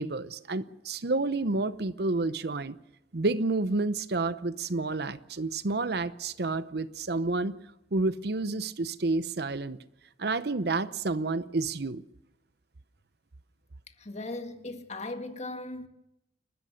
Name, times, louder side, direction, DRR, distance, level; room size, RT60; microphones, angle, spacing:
voice 1, 0.0-2.8 3.1-7.5 7.9-9.8 10.2-12.0, right 3 dB, 65° right, 0.8 m, -29 dB
voice 2, 14.0-15.9, left 2 dB, 40° left, 1.8 m, -38 dB
29.5 x 13.5 x 6.6 m
head